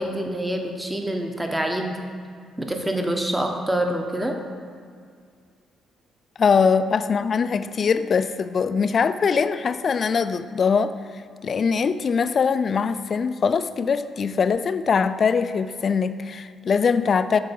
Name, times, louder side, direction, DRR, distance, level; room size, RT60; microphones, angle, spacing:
voice 1, 0.0-2.0 2.6-4.3, right 1 dB, 10° right, 3 dB, 1.0 m, -26 dB
voice 2, 6.4-10.9 11.4-17.4, left 5 dB, 45° left, 12 dB, 0.4 m, -22 dB
7.5 x 4.6 x 7.0 m, 2.2 s
cardioid pair, 90°, 0 cm